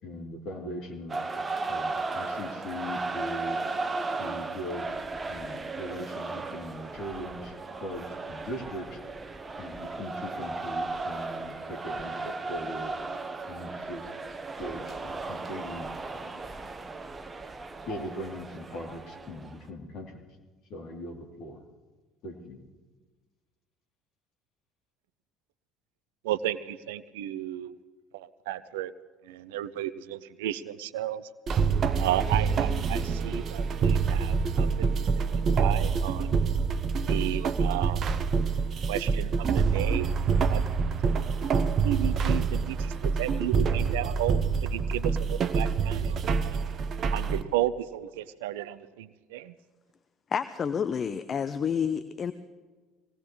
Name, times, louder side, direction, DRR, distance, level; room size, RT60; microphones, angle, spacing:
voice 1, 0.0-3.6 4.2-4.9 5.3-9.0 9.6-14.1 14.5-16.4 17.8-20.2 20.7-21.6 22.2-22.6, equal, 55° left, 0 dB, 3.1 m, -40 dB
sound 1, 1.1-19.6, right 3 dB, 25° right, 1.1 m, -36 dB
voice 2, 26.2-27.7 28.1-28.9 29.2-31.3 32.0-34.9 35.2-36.4 37.0-38.0 38.9-40.1 40.5-40.9 41.8-46.6 47.1-49.5, right 13 dB, 70° right, 16 dB, 0.5 m, -33 dB
sound 2, 31.5-47.4, right 5 dB, 45° right, 0.8 m, -26 dB
voice 3, 50.3-52.3, left 7 dB, 35° left, 12 dB, 0.7 m, -29 dB
23.5 x 18.0 x 3.2 m, 1.3 s
figure-of-eight pair, 60°, 0 cm